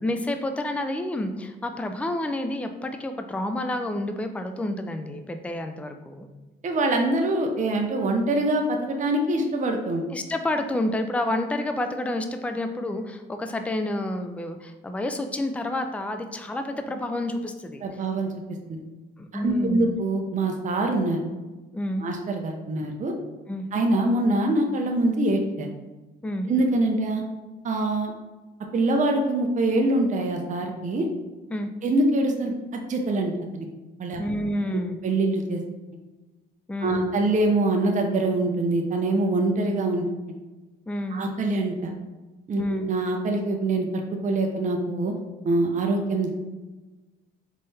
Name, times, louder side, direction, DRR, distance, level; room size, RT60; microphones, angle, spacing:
voice 1, 0.0-6.3 10.1-17.8 19.2-19.9 21.7-22.0 23.5-23.6 26.2-26.5 31.5-31.7 34.2-35.0 36.7-37.1 40.9-41.2 42.6-42.9, left 1 dB, 5° left, 6 dB, 0.4 m, -29 dB
voice 2, 6.6-10.0 17.8-18.3 18.7-18.8 19.3-21.2 22.0-23.1 23.7-25.7 26.5-27.2 27.6-28.1 28.7-31.1 31.8-33.7 34.0-34.2 34.7-35.6 36.8-40.0 41.1-41.9 42.5-45.1 45.4-46.3, right 2 dB, 40° right, 3 dB, 0.6 m, -24 dB
4.0 x 3.7 x 3.3 m, 1.2 s
cardioid pair, 90°, 20 cm